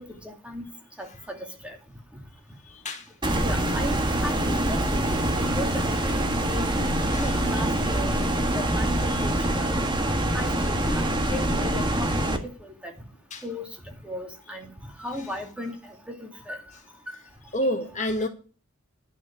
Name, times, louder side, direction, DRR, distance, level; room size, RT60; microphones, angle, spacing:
voice 1, 1.0-1.4 1.6-1.7 3.4-4.8 5.1-6.1 6.5-6.7 7.2-8.1 8.5-9.7 10.3-12.9 13.4-13.7 14.0-14.7 15.0-15.7 16.2-16.6 18.0-18.1, equal, 5° right, 2 dB, 2.4 m, -35 dB
voice 2, 2.7-3.1 7.1-7.5 9.1-9.2 13.3-13.4 17.5-18.3, left 1 dB, 35° left, 4 dB, 1.7 m, -29 dB
sound 1, 3.2-12.4, right 1 dB, 20° right, 1.6 m, -25 dB
11.5 x 6.3 x 8.5 m, 0.36 s
head